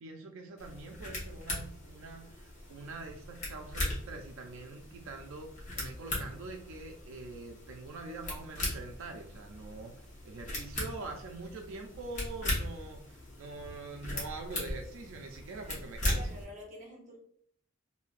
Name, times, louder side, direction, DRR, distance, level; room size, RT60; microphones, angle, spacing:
voice 1, 0.0-5.5 5.8-9.9 10.2-16.4, right 3 dB, 80° right, 3 dB, 0.4 m, -44 dB
sound 1, 0.6-16.4, left 1 dB, 35° left, 1.0 m, -39 dB
voice 2, 16.1-17.2, left 1 dB, 35° right, -1 dB, 0.8 m, -48 dB
3.2 x 2.7 x 2.4 m, 0.63 s
head